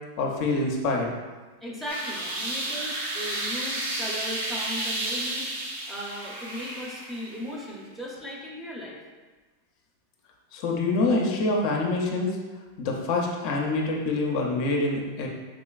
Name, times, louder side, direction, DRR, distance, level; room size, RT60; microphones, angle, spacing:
voice 1, 0.2-1.1 10.5-12.4 12.8-15.3, left 2 dB, 55° left, 0 dB, 0.6 m, -26 dB
voice 2, 1.6-5.5 5.9-9.0, equal, 5° right, -4 dB, 0.7 m, -37 dB
sound 1, 1.9-7.5, right 1 dB, 80° right, 0.9 m, -32 dB
3.8 x 3.0 x 2.4 m, 1.3 s
supercardioid pair, 130°, 0 cm